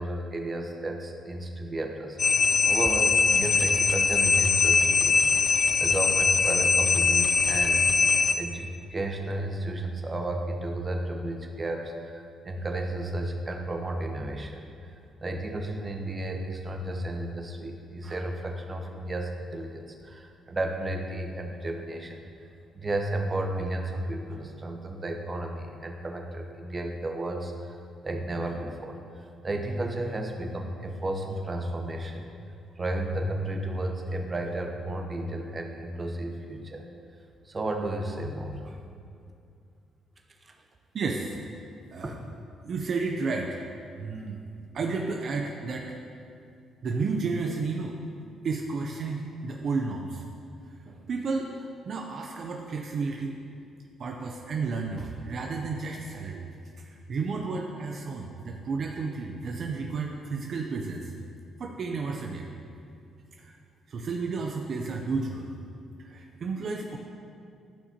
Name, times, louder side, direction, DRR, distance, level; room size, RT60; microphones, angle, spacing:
voice 1, 0.0-2.2 2.7-14.6 15.2-22.5 22.7-32.3 32.8-36.9 37.4-38.8 40.4-40.5 42.0-42.2, right 1 dB, 30° right, 3 dB, 0.9 m, -33 dB
sound 1, 2.2-8.3, left 4 dB, 45° left, 0.4 m, -22 dB
voice 2, 40.9-41.4 41.9-42.2 42.6-43.6 44.0-44.4 44.7-46.0 46.8-48.0 48.4-50.2 50.9-53.4 54.0-56.5 56.8-61.1 61.6-62.5 63.4-63.5 63.9-65.5 66.0-67.0, right 4 dB, 55° right, 1 dB, 0.6 m, -32 dB
13.5 x 5.7 x 2.9 m, 2.5 s
cardioid pair, 90°, 0 cm